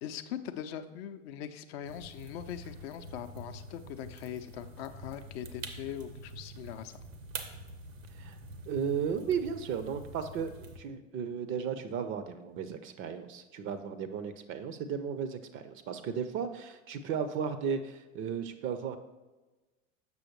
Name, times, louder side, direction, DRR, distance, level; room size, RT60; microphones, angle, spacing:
voice 1, 0.0-7.0, left 10 dB, 50° left, 9 dB, 0.5 m, -41 dB
sound 1, 1.9-10.8, right 3 dB, 75° right, 0.8 m, -46 dB
voice 2, 8.7-19.0, right 7 dB, 30° right, 10 dB, 0.5 m, -35 dB
6.9 x 6.1 x 3.1 m, 1.2 s
figure-of-eight pair, 75°, 39 cm